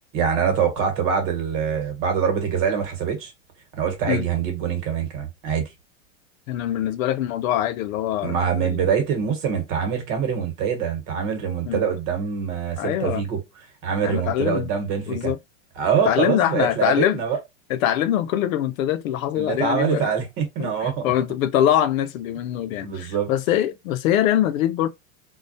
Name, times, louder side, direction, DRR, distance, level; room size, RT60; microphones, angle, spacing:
voice 1, 0.1-3.3 3.8-5.7 8.2-13.4 13.8-15.3 15.8-17.4 19.3-21.1 22.8-23.3, right 7 dB, 45° right, 1.2 m, -24 dB
voice 2, 6.5-8.9 11.7-11.8 12.8-13.2 14.0-14.7 15.1-15.4 16.0-17.2 17.7-20.1 20.6-24.9, left 11 dB, 75° left, 0.6 m, -23 dB
2.3 x 2.0 x 2.6 m
supercardioid pair, 130°, 41 cm